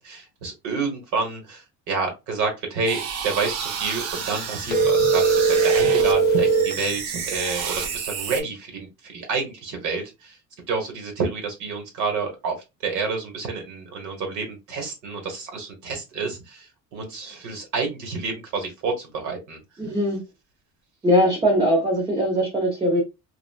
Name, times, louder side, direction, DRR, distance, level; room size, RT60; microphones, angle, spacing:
voice 1, 0.0-10.4 10.7-19.6, right 4 dB, 75° right, 1.2 m, -29 dB
sound 1, 2.9-6.1 6.4-8.4, right 6 dB, 55° right, 0.6 m, -31 dB
sound 2, 4.7-6.8, right 4 dB, 35° left, 0.6 m, -19 dB
voice 2, 19.8-20.2 21.0-23.0, equal, 15° right, 0.6 m, -20 dB
3.3 x 2.4 x 2.3 m
cardioid pair, 175°, 30 cm